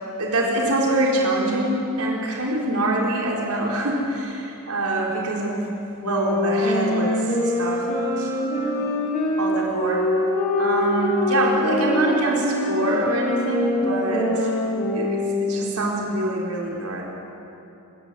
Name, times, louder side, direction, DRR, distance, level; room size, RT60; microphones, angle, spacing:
voice 1, 0.2-8.8 9.4-10.1 10.6-14.5 14.9-17.0, right 1 dB, 85° right, -2 dB, 4.1 m, -25 dB
sound 1, 6.0-15.7, left 1 dB, 40° left, 5.1 m, -24 dB
24.5 x 14.0 x 9.9 m, 2.8 s
head